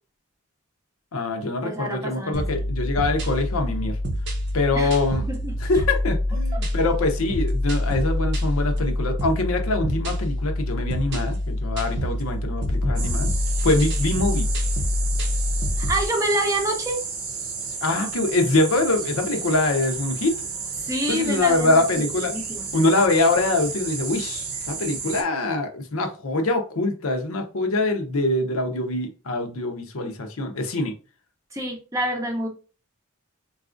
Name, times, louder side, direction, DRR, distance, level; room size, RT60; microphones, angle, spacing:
voice 1, 1.1-4.0 4.5-5.2 5.6-13.3 13.6-14.5 17.8-20.3 21.1-22.3 22.7-30.9, left 2 dB, 75° left, 0.7 m, -24 dB
voice 2, 1.6-2.6 4.7-5.0 5.3-5.5 6.5-6.6 15.8-17.0 20.8-22.6 31.5-32.5, right 1 dB, 15° right, 0.6 m, -27 dB
sound 1, 2.3-16.1, left 1 dB, 55° right, 0.6 m, -26 dB
sound 2, 13.0-25.2, right 5 dB, 90° right, 0.8 m, -32 dB
4.0 x 2.4 x 2.5 m
head